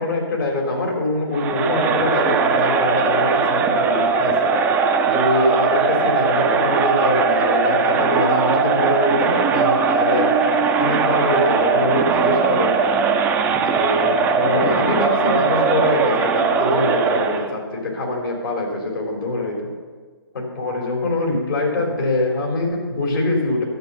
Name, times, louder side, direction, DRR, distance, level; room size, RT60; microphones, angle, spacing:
voice 1, 0.0-4.5 5.1-10.3 10.8-12.7 13.6-19.7 20.3-23.6, left 2 dB, 60° left, 0 dB, 3.5 m, -23 dB
Crowd, 1.3-17.5, right 5 dB, 10° right, 0.5 m, -19 dB
12.0 x 7.4 x 6.7 m, 1.5 s
figure-of-eight pair, 140°, 13 cm